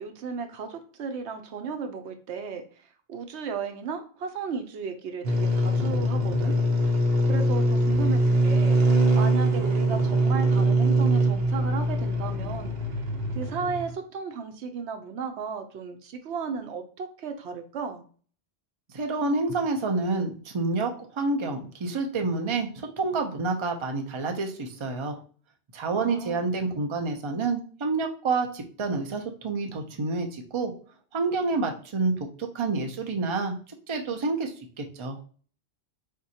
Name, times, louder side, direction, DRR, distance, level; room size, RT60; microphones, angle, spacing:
voice 1, 0.0-6.6 6.8-6.9 7.2-8.8 9.1-12.7 13.3-18.0 25.9-26.5, right 5 dB, 80° right, 7 dB, 0.9 m, -35 dB
sound 1, 5.2-13.9, right 1 dB, 60° right, 1.1 m, -23 dB
voice 2, 18.9-25.2 25.7-30.7 31.1-32.1 32.4-33.6 33.9-35.2, right 3 dB, 35° right, 3 dB, 0.6 m, -28 dB
4.3 x 3.7 x 2.7 m, 0.42 s
omnidirectional pair, 1.1 m